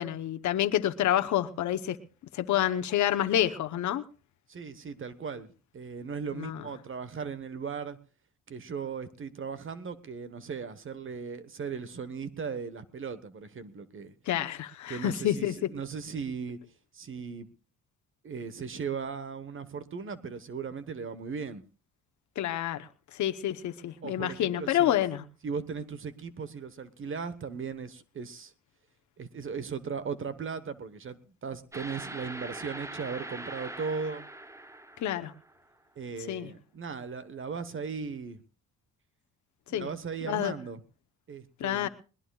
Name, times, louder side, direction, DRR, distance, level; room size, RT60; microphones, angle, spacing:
voice 1, 0.0-2.0 2.3-4.0 6.4-6.6 14.3-15.5 22.4-22.9 23.2-25.2 35.0-35.3 36.3-36.5 39.7-39.9 40.2-40.5 41.6-41.9, left 12 dB, 70° left, 0.9 m, -28 dB
voice 2, 4.5-5.5 5.7-8.0 8.5-14.1 14.9-16.6 16.9-17.5 18.2-21.6 24.0-24.9 25.4-28.5 29.2-34.3 36.0-38.4 39.7-40.8 41.3-41.9, right 5 dB, 45° right, 1.2 m, -37 dB
sound 1, 31.7-35.6, right 1 dB, 10° right, 0.9 m, -42 dB
21.0 x 19.0 x 2.4 m
cardioid pair, 90°, 30 cm